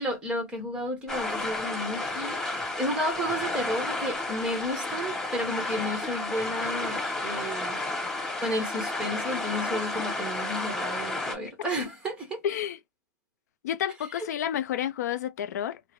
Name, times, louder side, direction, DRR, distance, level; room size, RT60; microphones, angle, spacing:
voice 1, 0.0-7.8 8.4-12.4 14.2-14.3, equal, 10° right, 1.2 m, -32 dB
sound 1, 1.1-11.3, left 2 dB, 5° left, 1.4 m, -32 dB
voice 2, 12.4-12.8 13.6-15.8, left 10 dB, 60° left, 0.5 m, -30 dB
3.6 x 2.1 x 3.0 m
hypercardioid pair, 145°, 10 cm